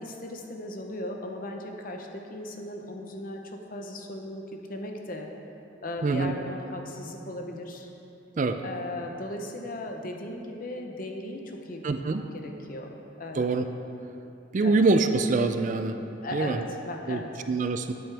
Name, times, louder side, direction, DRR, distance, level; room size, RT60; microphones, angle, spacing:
voice 1, 0.0-5.3 5.8-7.9 8.6-13.5 14.6-14.8 16.2-17.3, left 1 dB, 45° left, 3 dB, 0.9 m, -37 dB
voice 2, 6.0-6.3 8.4-8.6 11.8-12.2 13.4-13.6 14.5-16.0 16.3-16.6 17.1-17.2 17.5-17.9, right 3 dB, 40° right, 8 dB, 0.4 m, -24 dB
13.0 x 8.8 x 3.4 m, 2.8 s
head